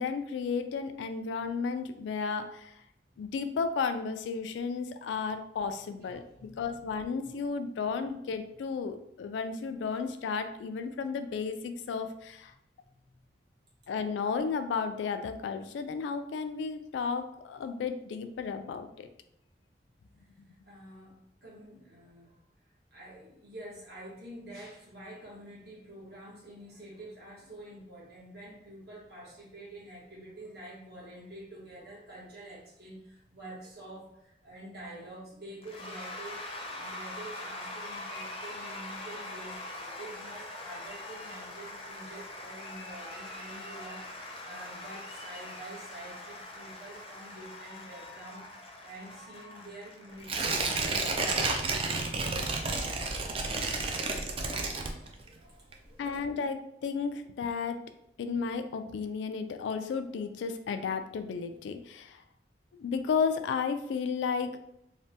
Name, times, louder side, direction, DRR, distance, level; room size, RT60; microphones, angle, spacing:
voice 1, 0.0-2.7 3.2-12.5 13.9-19.1 56.0-57.8 58.2-62.2 62.7-64.6, left 5 dB, 85° left, 8 dB, 0.3 m, -33 dB
voice 2, 6.0-6.9 7.2-7.3 20.2-22.4 22.9-51.5 54.3-56.1, right 1 dB, 65° right, -6 dB, 1.2 m, -48 dB
Cheering / Applause / Crowd, 35.6-51.2, left 1 dB, 30° left, 0.5 m, -43 dB
Tearing, 50.2-55.4 55.7-55.8, right 3 dB, 30° right, 0.3 m, -31 dB
3.2 x 2.1 x 2.7 m, 0.78 s
head